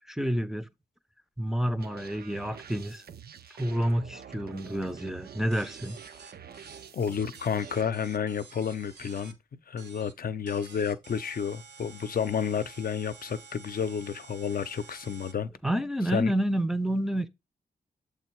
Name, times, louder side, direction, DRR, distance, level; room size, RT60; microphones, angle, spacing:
voice 1, 0.1-0.7 1.4-3.1 3.6-6.0 15.6-17.3, right 1 dB, ahead, 0.5 m, -29 dB
sound 1, 1.8-7.9, right 7 dB, 65° right, 0.5 m, -47 dB
sound 2, 5.5-9.3 9.8-10.1 10.5-15.3, right 5 dB, 85° right, 1.2 m, -50 dB
voice 2, 6.9-15.5 16.1-16.3, left 7 dB, 60° left, 0.6 m, -31 dB
7.3 x 3.4 x 4.5 m
wide cardioid pair, 110°, 17 cm